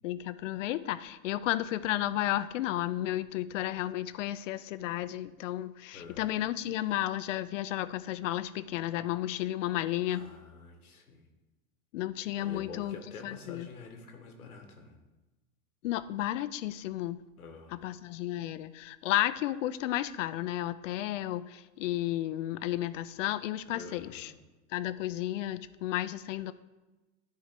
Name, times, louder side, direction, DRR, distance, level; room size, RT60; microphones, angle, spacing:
voice 1, 0.0-10.3 11.9-12.9 13.2-13.7 15.8-17.2 17.7-24.3 24.7-26.5, left 14 dB, 60° left, 14 dB, 0.6 m, -33 dB
voice 2, 5.9-6.5 10.1-11.3 12.3-15.0 17.4-18.0 23.7-24.4, left 4 dB, 85° left, 4 dB, 1.6 m, -48 dB
11.5 x 4.6 x 4.6 m, 1.1 s
hypercardioid pair, 105°, 42 cm